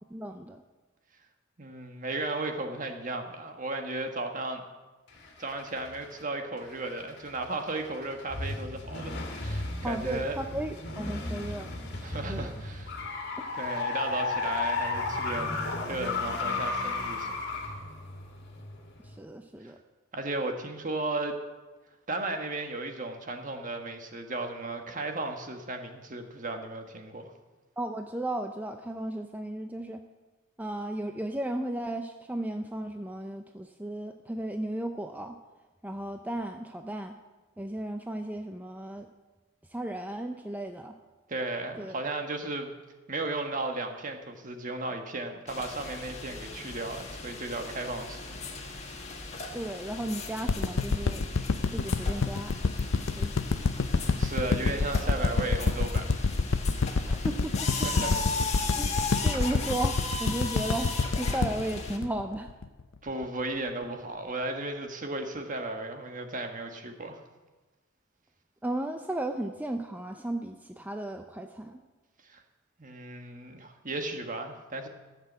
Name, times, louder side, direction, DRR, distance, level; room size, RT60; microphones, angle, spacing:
voice 1, 0.1-0.6 9.8-11.7 12.3-12.6 13.4-13.5 19.0-19.8 27.8-30.0 30.6-35.4 35.8-37.1 37.6-39.1 39.7-40.9 41.8-42.0 49.5-51.3 51.7-52.5 53.1-53.4 57.0-57.9 58.8-58.9 59.2-62.5 68.6-71.8, right 1 dB, 10° right, 6 dB, 0.5 m, -35 dB
voice 2, 1.6-4.6 5.4-10.4 11.0-11.1 12.0-13.0 13.6-17.3 19.6-19.7 20.1-21.4 22.1-27.3 41.3-42.7 43.1-48.4 54.2-56.3 57.8-58.7 63.0-67.2 72.3-72.4 72.8-74.9, right 2 dB, 40° right, 5 dB, 1.4 m, -35 dB
sound 1, 5.1-6.2 6.6-19.2, left 3 dB, 55° left, 2.3 m, -34 dB
sound 2, 45.5-62.0, left 3 dB, 35° left, 1.7 m, -37 dB
sound 3, 50.5-62.8 63.2-63.3, left 4 dB, 75° left, 0.6 m, -27 dB
14.5 x 6.8 x 8.0 m, 1.2 s
head